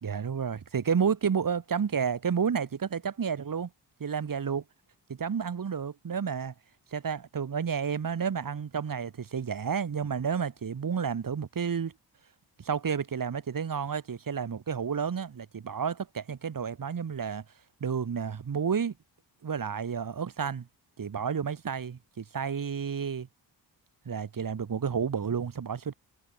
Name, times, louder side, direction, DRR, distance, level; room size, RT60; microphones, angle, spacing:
voice 1, 0.0-3.7 4.0-4.6 5.2-6.5 6.9-11.9 12.6-17.4 17.8-18.9 19.4-20.7 21.0-23.3 24.1-25.9, right 6 dB, 50° right, 2.1 m, -31 dB
wide cardioid pair, 115°, 43 cm